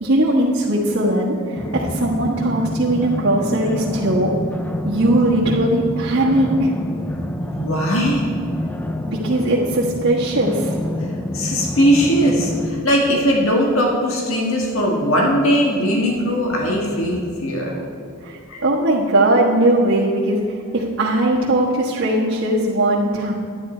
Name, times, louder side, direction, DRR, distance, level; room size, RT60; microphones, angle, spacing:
voice 1, 0.0-4.3 4.8-6.7 9.1-10.8 18.2-23.3, right 1 dB, 70° right, -7 dB, 1.5 m, -19 dB
sound 1, 1.5-12.7, left 1 dB, 10° left, 0.5 m, -27 dB
voice 2, 7.4-8.3 11.3-17.8 18.5-18.6, equal, 85° left, -1 dB, 1.7 m, -19 dB
11.0 x 9.9 x 4.5 m, 2.4 s
head